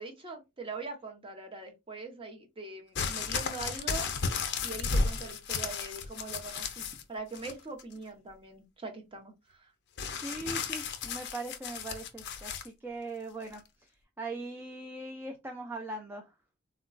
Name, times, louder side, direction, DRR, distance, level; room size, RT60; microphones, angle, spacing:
voice 1, 0.0-4.1 4.6-9.7 10.1-10.2, right 3 dB, 25° right, 4 dB, 0.7 m, -42 dB
sound 1, 2.9-7.0 7.3-7.9 10.0-12.7 13.5-13.6, left 5 dB, 55° left, 0.5 m, -34 dB
voice 2, 10.2-16.3, right 2 dB, 10° right, 2 dB, 0.3 m, -40 dB
3.8 x 2.2 x 2.4 m, 0.23 s
head